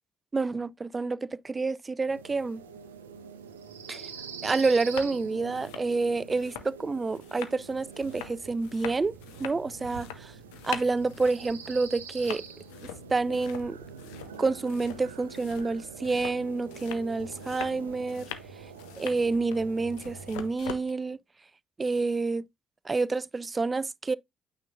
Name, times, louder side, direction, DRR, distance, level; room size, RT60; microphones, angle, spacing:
voice 1, 0.3-2.6 3.9-4.1 4.4-9.1 9.4-10.3 10.6-12.4 12.8-13.8 14.4-18.3 19.0-21.2 21.8-22.4 22.8-24.2, right 3 dB, 30° right, 0.3 m, -28 dB
sound 1, 2.1-20.5, right 6 dB, 85° right, 0.6 m, -45 dB
sound 2, 4.1-4.2 4.6-5.1 5.4-20.9, left 11 dB, 75° left, 0.7 m, -43 dB
9.0 x 5.0 x 2.5 m
figure-of-eight pair, 45°, 0 cm